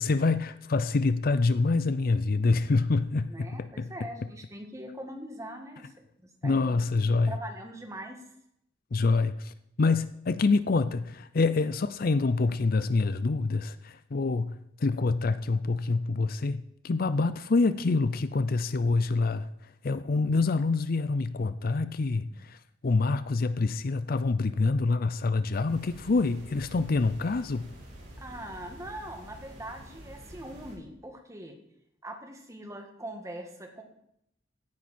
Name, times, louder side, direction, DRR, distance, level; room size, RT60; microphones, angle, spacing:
voice 1, 0.0-3.9 6.4-7.3 8.9-19.5 19.8-22.6 22.8-27.7, left 3 dB, 50° left, 0.5 m, -26 dB
voice 2, 3.3-5.9 6.2-6.8 7.1-8.2 22.3-22.4 28.2-31.6 32.0-33.8, right 1 dB, 15° right, 1.7 m, -42 dB
sound 1, 25.7-30.7, equal, 70° right, 5.2 m, -48 dB
16.5 x 9.6 x 4.3 m
head